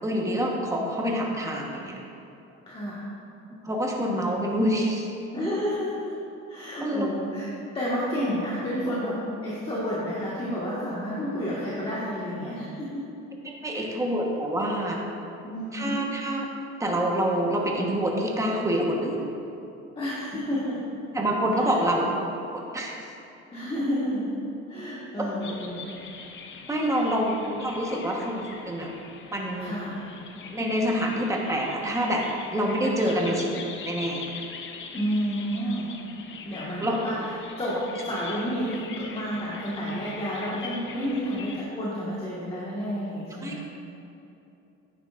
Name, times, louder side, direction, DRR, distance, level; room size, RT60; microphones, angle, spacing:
voice 1, 0.0-2.0 3.6-5.1 6.8-7.1 8.2-8.4 13.4-15.0 15.7-16.4 16.8-19.2 21.1-22.1 22.5-23.0 26.7-28.9 29.3-29.7 30.5-32.2 32.5-33.5 33.8-34.3 36.8-37.0 43.4-43.6, equal, 10° right, -1 dB, 1.2 m, -26 dB
voice 2, 2.7-3.0 5.3-6.1 6.5-7.5 7.7-13.0 13.7-13.9 15.4-16.0 20.0-20.8 21.5-21.8 23.5-24.3 24.7-26.0 29.6-30.0 33.0-33.3 34.9-35.9 36.4-37.3 37.6-37.8 38.0-43.6, equal, 20° left, -8 dB, 1.6 m, -30 dB
sound 1, 25.4-41.6, left 5 dB, 40° left, 0.8 m, -43 dB
11.0 x 9.2 x 2.5 m, 2.9 s
cardioid pair, 125°, 30 cm